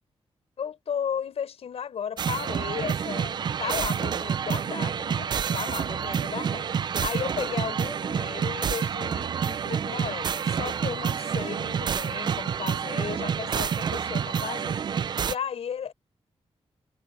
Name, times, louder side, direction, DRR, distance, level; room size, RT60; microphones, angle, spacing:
voice 1, 0.6-14.8 15.3-15.9, left 8 dB, 70° left, 5.7 m, -35 dB
sound 1, 2.2-15.3, right 7 dB, 45° right, 0.3 m, -28 dB
wide cardioid pair, 165°, 11 cm